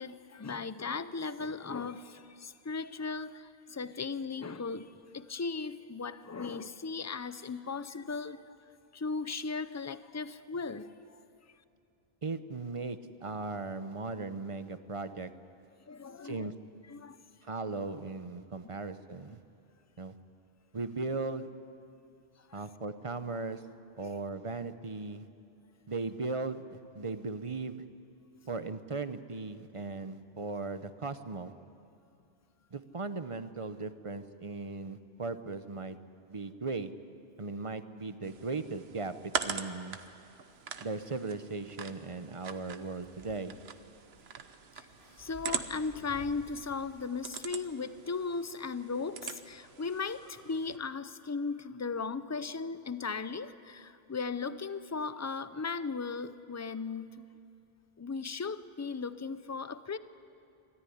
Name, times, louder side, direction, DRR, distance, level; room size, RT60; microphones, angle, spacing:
voice 1, 0.0-8.6 8.9-11.2 15.9-16.5 16.9-17.2 44.8-44.9 45.2-57.3 58.0-60.0, left 4 dB, 20° left, 14 dB, 0.4 m, -37 dB
voice 2, 12.2-15.3 16.2-16.5 17.4-19.4 20.0-20.1 20.7-21.5 22.5-23.6 24.0-25.3 25.9-27.8 28.5-31.5 32.7-36.0 36.3-36.9 37.4-40.0 40.8-43.6, right 3 dB, 35° right, 11 dB, 0.8 m, -37 dB
sound 1, 38.2-50.8, right 6 dB, 80° right, 1.2 m, -43 dB
sound 2, 42.5-47.7, equal, 55° left, 3.5 m, -56 dB
24.0 x 14.0 x 10.0 m, 2.7 s
omnidirectional pair, 1.0 m